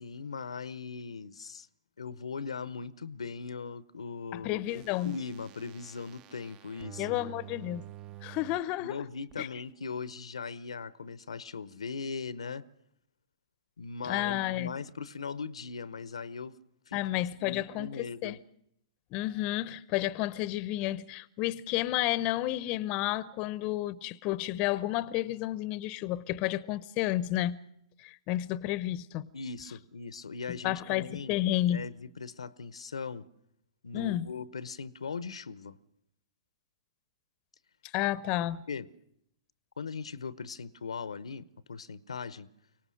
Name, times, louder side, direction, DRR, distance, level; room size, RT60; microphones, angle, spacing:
voice 1, 0.0-1.7 2.0-7.2 8.8-12.7 13.8-16.5 16.9-18.4 29.3-31.4 31.7-33.3 33.8-35.8 38.7-38.9 39.8-42.5, left 5 dB, 85° left, 0.8 m, -39 dB
voice 2, 4.3-5.2 7.0-7.8 8.2-9.0 9.4-9.5 14.0-14.7 16.9-18.4 19.1-27.6 28.0-29.3 30.5-31.8 33.9-34.3 37.9-38.6, left 15 dB, 35° left, 0.7 m, -31 dB
sound 1, 4.7-8.6 9.3-9.4, right 14 dB, 30° right, 0.8 m, -48 dB
24.0 x 18.5 x 6.4 m
hypercardioid pair, 130°, 3 cm